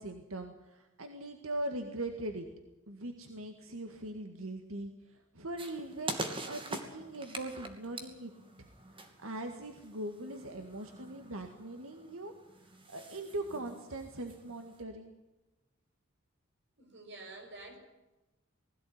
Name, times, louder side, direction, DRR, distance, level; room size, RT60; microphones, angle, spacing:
voice 1, 0.0-2.5 2.9-8.3 9.2-12.3 12.9-15.1, right 1 dB, 90° right, 5 dB, 2.0 m, -41 dB
sound 1, 5.6-14.8, right 2 dB, 25° right, 2.7 m, -45 dB
voice 2, 16.8-17.8, right 2 dB, 60° right, 4 dB, 6.2 m, -48 dB
20.5 x 16.0 x 9.5 m, 1.0 s
head